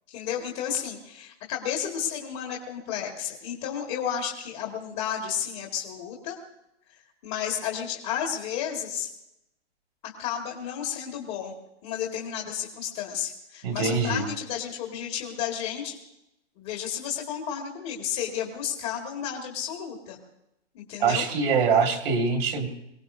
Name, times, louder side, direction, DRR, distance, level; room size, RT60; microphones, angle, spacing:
voice 1, 0.1-6.4 7.2-9.1 10.2-11.5 11.8-16.0 16.6-20.2 20.7-21.2, left 9 dB, 25° left, 0 dB, 1.9 m, -32 dB
voice 2, 13.6-14.2 21.0-22.7, right 5 dB, 55° right, 3 dB, 2.2 m, -23 dB
23.5 x 17.5 x 2.7 m, 0.86 s
hypercardioid pair, 160°, 35 cm